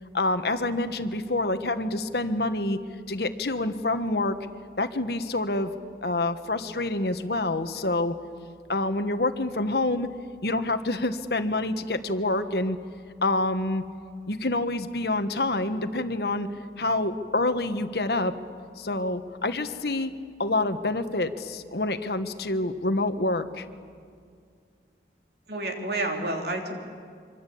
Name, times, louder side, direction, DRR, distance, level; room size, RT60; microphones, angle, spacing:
voice 1, 0.1-2.8 3.1-4.4 4.8-5.7 6.0-8.1 8.7-10.1 10.4-12.8 13.2-13.8 14.3-16.5 16.8-18.3 18.8-20.1 20.4-23.6, left 2 dB, 65° left, 8 dB, 1.4 m, -27 dB
voice 2, 25.5-26.7, right 2 dB, 65° right, 3 dB, 3.3 m, -29 dB
25.5 x 25.0 x 8.6 m, 2.2 s
head